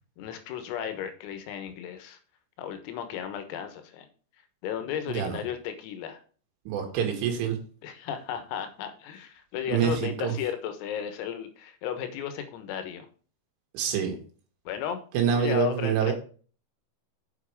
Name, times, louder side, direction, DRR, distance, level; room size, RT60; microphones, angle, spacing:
voice 1, 0.2-2.2 2.6-4.1 4.6-6.2 7.8-13.1 14.7-15.0 15.3-16.1, left 9 dB, 90° left, 8 dB, 4.0 m, -34 dB
voice 2, 5.1-5.4 6.7-7.6 9.7-10.3 13.7-14.2 15.1-16.1, right 8 dB, 70° right, 3 dB, 4.3 m, -26 dB
8.0 x 7.4 x 4.7 m, 0.40 s
omnidirectional pair, 6.0 m